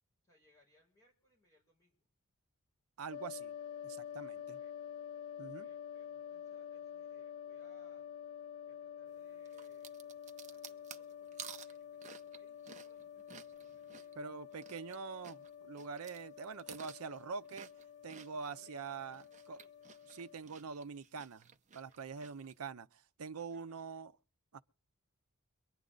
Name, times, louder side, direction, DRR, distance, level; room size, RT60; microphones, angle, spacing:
voice 1, 0.2-2.1 4.1-5.0 5.5-8.1 8.6-11.4 11.7-14.7 18.3-20.0 21.7-22.4 23.2-24.1, left 1 dB, 15° left, 4.7 m, -71 dB
voice 2, 3.0-3.5 3.8-4.6 5.4-5.7 14.2-17.7 18.0-19.2 19.5-19.6 20.1-21.5 21.7-24.1 24.5-24.6, right 5 dB, 75° right, 0.6 m, -45 dB
sound 1, 3.1-20.4, left 9 dB, 55° left, 0.6 m, -49 dB
sound 2, 9.4-15.0 15.2-18.6 19.0-22.5, right 7 dB, 35° right, 0.7 m, -54 dB
23.5 x 9.8 x 3.9 m
head